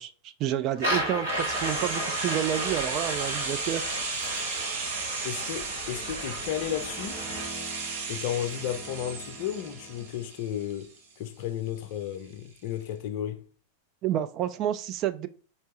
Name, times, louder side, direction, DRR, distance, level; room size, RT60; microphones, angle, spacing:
voice 1, 0.0-3.9 14.0-15.3, right 11 dB, 35° right, 0.4 m, -29 dB
sound 1, 0.8-7.5, equal, 75° right, 1.9 m, -34 dB
sound 2, 1.3-11.1 11.4-11.5, right 4 dB, 55° right, 0.8 m, -35 dB
voice 2, 5.2-7.3 8.1-13.4, left 10 dB, 50° left, 0.5 m, -33 dB
sound 3, 5.9-10.5, equal, 15° left, 0.8 m, -46 dB
4.4 x 2.9 x 3.0 m
figure-of-eight pair, 90°, 0 cm